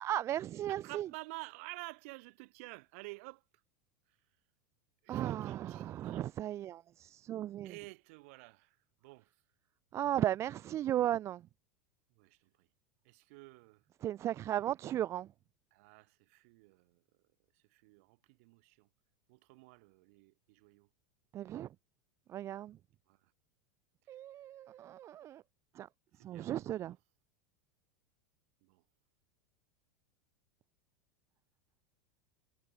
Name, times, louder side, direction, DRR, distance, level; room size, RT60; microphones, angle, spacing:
voice 1, 0.0-1.1 5.1-7.7 9.9-11.4 14.0-15.3 21.3-21.7 22.3-22.8 24.1-25.4 25.7-25.9 26.2-27.0, right 12 dB, 30° right, 0.6 m, -36 dB
voice 2, 0.7-3.4 4.1-4.2 5.0-6.3 7.6-9.3 12.1-12.7 13.0-13.8 15.7-17.0 17.5-18.9 19.3-20.9 23.1-23.3 26.2-26.9 28.6-28.8, right 26 dB, 55° right, 6.4 m, -51 dB
figure-of-eight pair, 85°, 9 cm